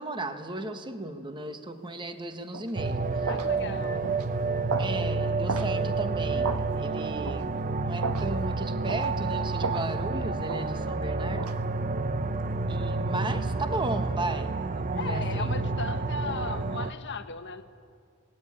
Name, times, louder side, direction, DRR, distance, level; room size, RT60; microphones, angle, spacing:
voice 1, 0.0-3.3 4.8-11.5 12.7-15.6, right 2 dB, 20° right, 8 dB, 1.3 m, -35 dB
sound 1, 2.5-2.7 3.3-3.5 4.0-4.3 4.7-4.9 5.5-5.7 6.4-6.7 7.3-7.4 8.0-8.3 8.9-9.1 9.6-9.9 10.5-10.7 11.4-11.6, right 4 dB, 85° right, 1.3 m, -33 dB
sound 2, 2.8-16.9, right 3 dB, 35° right, 0.7 m, -29 dB
voice 2, 3.3-4.1 15.0-17.6, left 4 dB, 50° left, 8 dB, 1.3 m, -36 dB
22.5 x 19.0 x 9.8 m, 2.3 s
head